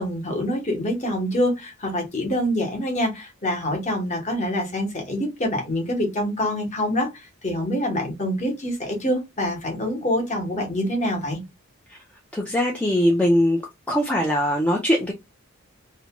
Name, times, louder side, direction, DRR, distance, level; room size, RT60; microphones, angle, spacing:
voice 1, 0.0-11.4, left 1 dB, 35° left, 0.9 m, -26 dB
voice 2, 12.3-13.6 13.9-15.1, equal, 5° left, 0.3 m, -21 dB
2.6 x 2.1 x 2.8 m
head